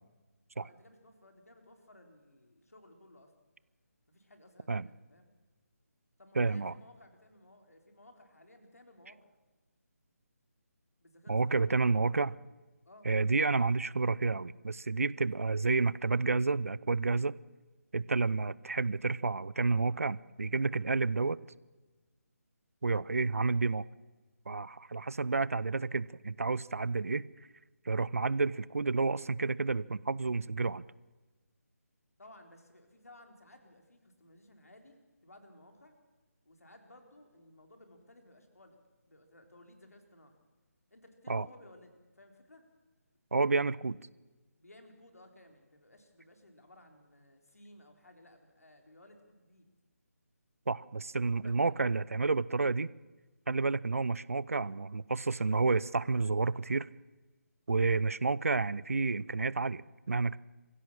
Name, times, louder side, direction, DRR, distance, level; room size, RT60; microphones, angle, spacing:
voice 1, 0.6-3.3 4.1-5.3 6.2-9.4 11.0-11.7 12.9-13.1 32.2-36.0 36.4-38.8 39.1-40.4 40.9-42.7 44.6-49.7 51.3-52.0, left 1 dB, 70° left, 4 dB, 4.1 m, -58 dB
voice 2, 6.4-6.7 11.3-12.4 13.0-17.3 17.9-21.4 22.8-23.8 24.5-27.2 27.9-30.8 41.3-41.5 43.3-44.0 50.7-52.9 53.5-56.9 57.7-60.4, right 3 dB, 60° right, 21 dB, 0.6 m, -30 dB
24.5 x 16.0 x 7.4 m, 1.2 s
figure-of-eight pair, 150°, 9 cm